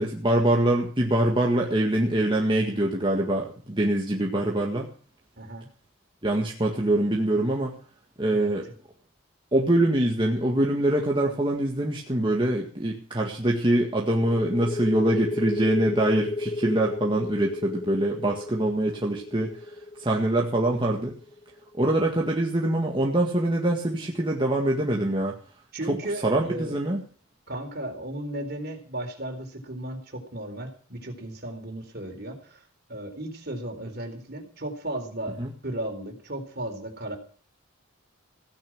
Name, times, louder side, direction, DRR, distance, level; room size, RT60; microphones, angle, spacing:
voice 1, 0.0-4.9 6.2-7.8 8.2-8.7 9.5-19.7 20.0-21.2 21.7-25.4 25.9-26.0 26.2-27.0 35.4-35.5, right 1 dB, 25° right, -1 dB, 1.8 m, -24 dB
sound 1, 14.3-21.6, left 2 dB, 20° left, 0.6 m, -33 dB
voice 2, 25.7-26.7 27.5-32.6 32.9-35.4 35.6-37.2, right 1 dB, 50° right, 5 dB, 4.0 m, -35 dB
16.5 x 10.5 x 6.1 m, 0.42 s
head